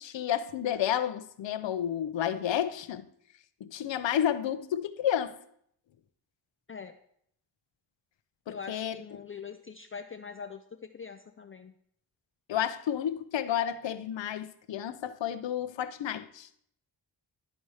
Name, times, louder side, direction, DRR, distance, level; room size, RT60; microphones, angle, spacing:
voice 1, 0.0-3.0 3.6-5.3 8.5-9.0 12.5-16.5, left 10 dB, 80° left, 0.7 m, -31 dB
voice 2, 8.5-11.7, left 6 dB, 30° left, 0.5 m, -43 dB
12.0 x 4.2 x 4.8 m
cardioid pair, 80°, 44 cm